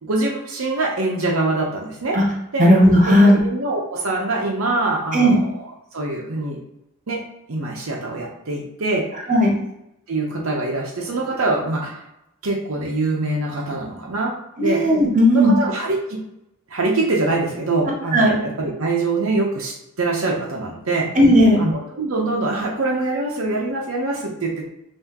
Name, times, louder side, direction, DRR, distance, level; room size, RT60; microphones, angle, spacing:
voice 1, 0.0-2.2 2.5-2.7 3.1-5.4 5.9-6.6 7.1-7.2 7.5-9.1 10.1-12.0 12.4-14.9 15.3-16.2 16.7-21.1 21.6-24.7, right 2 dB, 70° right, -1 dB, 0.8 m, -24 dB
voice 2, 2.6-3.4 5.1-5.4 9.3-9.5 14.6-15.5 18.1-18.3 21.1-21.6, equal, 35° right, -1 dB, 1.0 m, -14 dB
5.7 x 2.7 x 2.9 m, 0.84 s
head